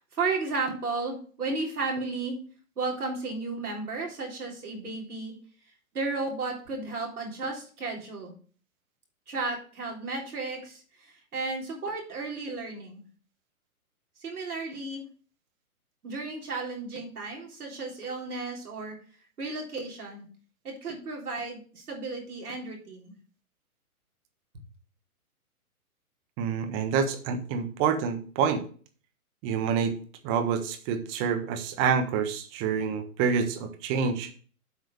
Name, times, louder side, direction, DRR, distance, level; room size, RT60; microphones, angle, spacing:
voice 1, 0.1-2.4 2.8-5.3 5.9-8.3 9.3-13.0 14.2-15.0 16.0-19.0 19.4-20.3 20.6-23.1, right 3 dB, 80° right, 0 dB, 3.7 m, -33 dB
voice 2, 26.4-28.6 29.4-29.9 30.2-34.3, right 6 dB, 30° right, 7 dB, 1.4 m, -27 dB
8.2 x 4.8 x 6.2 m, 0.42 s
hypercardioid pair, 130°, 44 cm